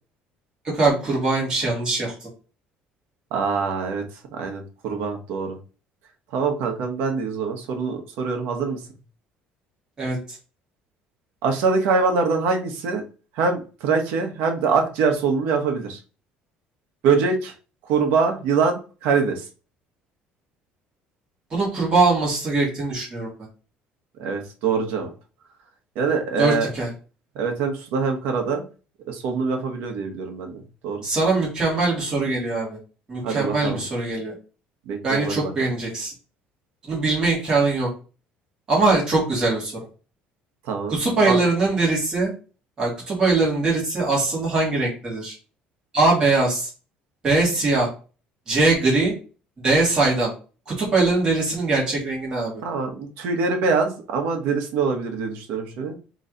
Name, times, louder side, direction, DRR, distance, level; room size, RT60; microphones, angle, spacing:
voice 1, 0.7-2.3 10.0-10.2 21.5-23.3 26.4-26.9 31.0-32.8 33.1-34.3 35.0-36.1 36.9-37.9 38.7-39.7 40.9-42.3 42.8-45.3 45.9-46.7 47.2-47.9 48.5-49.1 49.6-50.3 50.7-52.6, right 3 dB, 25° right, -4 dB, 2.4 m, -21 dB
voice 2, 3.3-4.0 4.3-5.6 6.3-8.8 11.4-13.0 13.4-16.0 17.0-17.5 17.9-19.4 24.2-25.1 25.9-26.7 27.3-28.6 29.1-30.5 30.8-31.0 33.2-33.8 34.9-35.7 40.7-41.0 41.2-41.4 52.6-55.9, right 5 dB, 75° right, 4 dB, 1.1 m, -24 dB
3.9 x 3.1 x 4.0 m, 0.35 s
cardioid pair, 165°, 3 cm